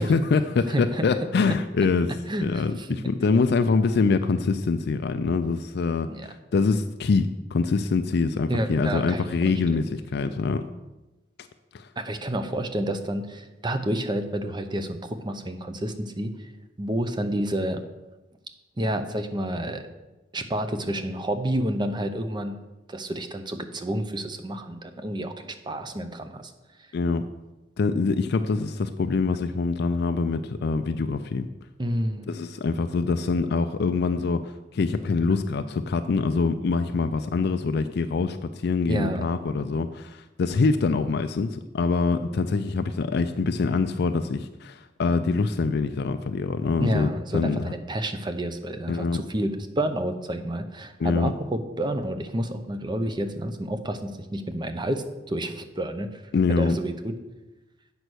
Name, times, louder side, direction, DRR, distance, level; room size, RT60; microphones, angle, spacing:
voice 1, 0.0-2.1 2.4-10.6 11.7-11.9 26.9-27.2 27.8-31.5 32.3-47.7 48.9-49.2 51.0-51.3 56.3-56.8, left 4 dB, 60° left, 9 dB, 0.4 m, -24 dB
voice 2, 0.7-1.0 2.3-3.0 6.1-6.3 8.5-9.2 12.0-16.3 16.8-17.8 18.8-19.8 20.3-22.6 22.9-26.5 31.8-32.3 38.9-39.3 46.8-56.1 56.5-57.1, right 1 dB, 25° right, 8 dB, 0.7 m, -29 dB
8.0 x 5.4 x 6.2 m, 1.1 s
head